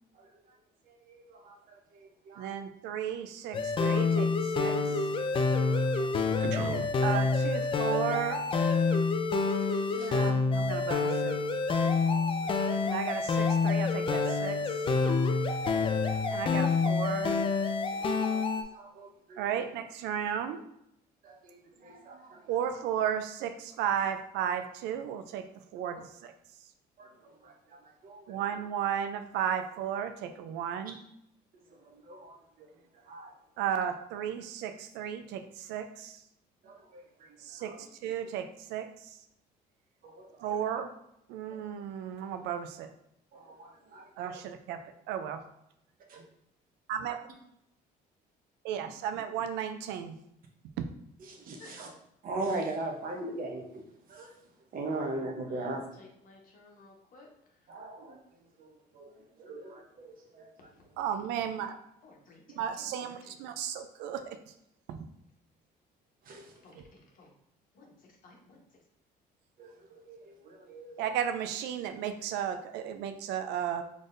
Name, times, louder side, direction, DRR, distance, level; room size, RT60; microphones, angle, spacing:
voice 1, 0.1-0.5 0.9-2.5 5.7-6.4 9.3-10.2 11.8-12.8 15.2-15.3 15.6-16.4 17.9-19.6 21.2-22.5 27.0-28.4 31.7-32.7 33.0-33.3 36.6-37.9 40.0-40.6 43.3-44.4 51.3-51.9 52.2-53.8 54.1-54.3 54.7-55.9 57.7-58.2 58.6-60.7 66.2-66.5 69.6-71.0, right 2 dB, 55° right, 2 dB, 0.9 m, -42 dB
voice 2, 2.4-5.1 6.4-8.4 9.8-11.3 12.8-14.8 16.3-17.4 19.4-20.6 22.5-25.4 25.7-26.3 28.3-31.0 33.6-36.2 37.4-39.2 40.4-40.9 41.3-42.9 44.2-44.8 45.1-45.4 46.9-47.2 48.6-50.2 50.8-50.9 61.0-61.8 62.6-64.4 64.9-65.1 66.7-66.8 71.0-73.8, right 9 dB, 85° right, 8 dB, 0.4 m, -34 dB
sound 1, 3.5-18.6, left 4 dB, 30° left, 0.4 m, -27 dB
voice 3, 51.6-51.9 54.9-55.2 55.5-57.7 60.7-60.8 61.4-61.5 62.0-63.3 66.6-67.3 67.7-68.6, left 3 dB, 55° left, 0 dB, 1.1 m, -56 dB
3.8 x 3.4 x 2.6 m, 0.78 s
cardioid pair, 110°, 17 cm